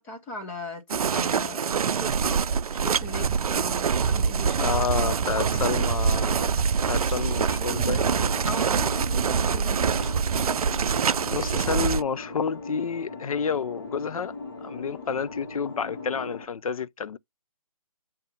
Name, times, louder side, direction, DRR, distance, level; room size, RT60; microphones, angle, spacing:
voice 1, 0.0-2.4 2.7-5.9 7.0-7.2 8.4-10.1, left 1 dB, 10° left, 0.7 m, -39 dB
sound 1, 0.9-12.0, right 6 dB, 90° right, 0.4 m, -25 dB
voice 2, 4.6-6.5 6.9-8.2 11.3-14.3 14.6-17.2, left 6 dB, 75° left, 0.5 m, -30 dB
Camera, 6.9-7.2 8.3-8.6 9.9-11.2 11.7-11.9, right 6 dB, 60° right, 0.8 m, -48 dB
sound 2, 7.1-16.5, left 3 dB, 40° left, 1.4 m, -40 dB
7.5 x 2.8 x 5.3 m
hypercardioid pair, 165°, 19 cm